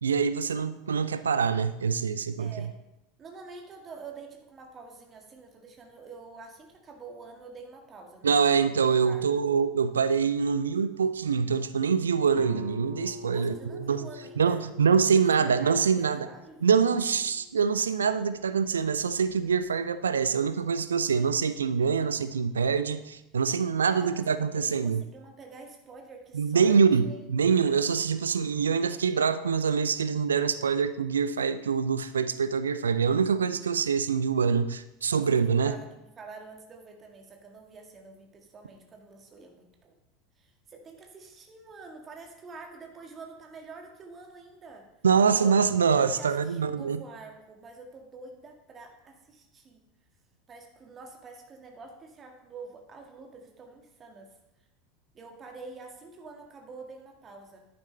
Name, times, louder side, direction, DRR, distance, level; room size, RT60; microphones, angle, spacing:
voice 1, 0.0-2.5 8.2-14.1 14.4-16.3 16.6-25.0 26.3-35.7 45.0-47.0, right 6 dB, 75° right, 13 dB, 0.4 m, -25 dB
voice 2, 2.4-2.8 3.2-8.7 9.0-9.2 13.3-16.7 23.9-26.8 27.0-27.2 35.1-40.0 40.4-44.9 45.4-49.8 50.5-54.3 55.1-57.7, right 4 dB, 30° right, 3 dB, 1.8 m, -47 dB
Guitar, 12.3-17.8, left 1 dB, 45° right, 2.4 m, -45 dB
10.5 x 9.3 x 3.2 m, 0.92 s
figure-of-eight pair, 80°, 0 cm